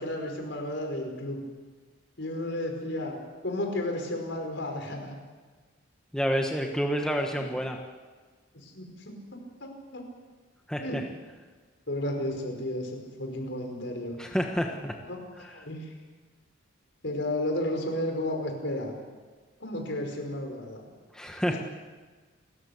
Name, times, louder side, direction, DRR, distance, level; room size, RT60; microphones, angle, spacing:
voice 1, 0.0-1.4 2.2-3.2 3.4-5.2 7.3-7.5 8.6-9.2 9.6-10.0 10.8-11.0 11.9-14.2 15.0-15.9 17.0-19.0 19.6-20.8 21.5-21.6, left 1 dB, 60° left, 3 dB, 5.2 m, -33 dB
voice 2, 6.1-7.8 10.7-11.0 14.2-14.9 21.1-21.6, equal, 5° left, 1 dB, 1.4 m, -28 dB
29.5 x 14.5 x 8.2 m, 1.4 s
head